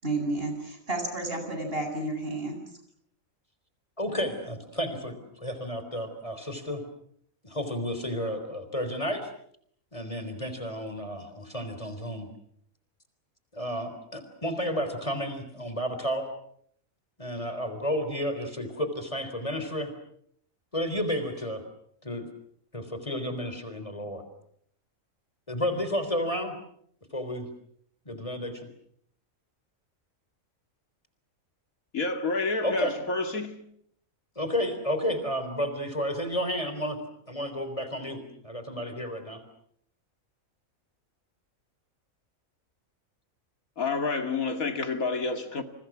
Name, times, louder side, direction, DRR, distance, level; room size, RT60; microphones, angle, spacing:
voice 1, 0.0-2.6, right 2 dB, 45° right, 8.3 m, -31 dB
voice 2, 4.0-6.8 7.4-9.3 9.9-12.3 13.5-16.3 17.2-19.9 20.7-21.6 22.0-22.3 22.7-24.2 25.5-26.5 27.1-27.5 28.1-28.7 32.6-32.9 34.4-37.0 37.3-39.4, equal, 25° left, 3.9 m, -31 dB
voice 3, 31.9-33.6 43.8-45.6, left 3 dB, 80° left, 2.7 m, -29 dB
29.5 x 29.0 x 6.2 m
omnidirectional pair, 1.4 m